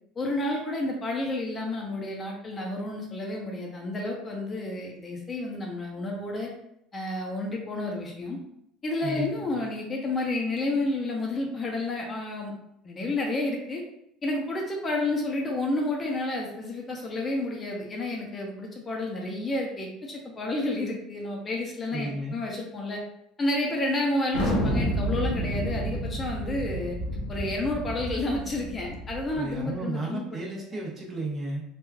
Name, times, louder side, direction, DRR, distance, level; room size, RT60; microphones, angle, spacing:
voice 1, 0.2-6.5 6.9-8.4 8.8-12.5 12.8-13.8 14.2-23.0 23.4-27.0 27.3-30.4, left 2 dB, 30° left, 0 dB, 0.6 m, -30 dB
voice 2, 9.0-9.6 21.9-22.4 29.3-31.6, right 1 dB, 30° right, -3 dB, 0.9 m, -33 dB
Thunder, 24.3-29.5, equal, 90° left, 0.8 m, -30 dB
3.0 x 2.3 x 2.3 m, 0.78 s
supercardioid pair, 100°, 0 cm